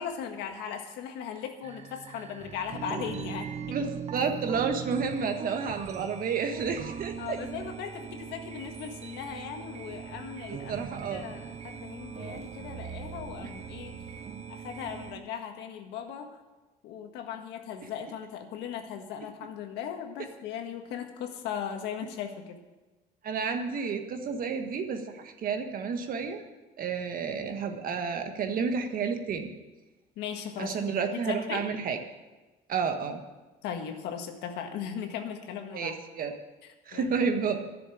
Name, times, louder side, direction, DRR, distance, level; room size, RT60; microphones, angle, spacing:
voice 1, 0.0-3.8 7.2-13.9 14.5-16.4 16.8-22.6 30.2-31.7 33.6-35.9 36.6-37.1, left 8 dB, 85° left, 5 dB, 1.6 m, -38 dB
sound 1, 1.6-15.2, right 7 dB, 40° right, 0.7 m, -40 dB
voice 2, 3.7-7.4 10.7-11.2 23.2-26.4 26.8-29.5 30.6-32.0 32.7-33.2 35.7-36.3 36.9-37.6, right 5 dB, 55° right, 6 dB, 1.6 m, -31 dB
12.0 x 6.9 x 10.0 m, 1.2 s
cardioid pair, 110°, 17 cm